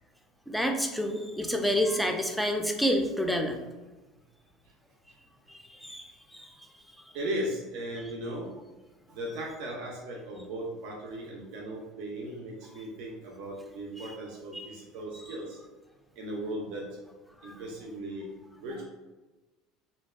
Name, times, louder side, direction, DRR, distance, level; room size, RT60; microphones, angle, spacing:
voice 1, 0.5-3.6 5.5-6.5 14.6-14.8 15.3-15.4 17.4-17.5, equal, ahead, 3 dB, 0.4 m, -29 dB
voice 2, 7.1-8.5 9.1-15.6 16.2-18.8, right 1 dB, 70° right, -3 dB, 0.5 m, -37 dB
2.5 x 2.2 x 2.3 m, 1.2 s
hypercardioid pair, 90°, 0 cm